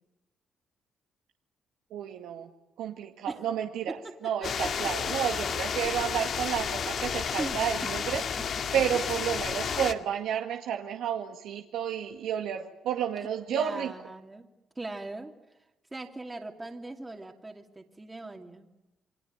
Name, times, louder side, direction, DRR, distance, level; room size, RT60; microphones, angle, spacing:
voice 1, 1.9-2.5 2.8-8.2 8.7-13.9, right 9 dB, 90° right, 3 dB, 2.1 m, -31 dB
voice 2, 3.9-4.9 7.4-7.7 8.1-8.5 8.9-9.1 13.5-14.5 14.7-15.3 15.9-18.7, right 2 dB, 20° right, 3 dB, 2.8 m, -40 dB
sound 1, 4.4-9.9, left 7 dB, 60° left, 2.2 m, -32 dB
29.5 x 22.0 x 9.0 m, 0.98 s
cardioid pair, 90°, 0 cm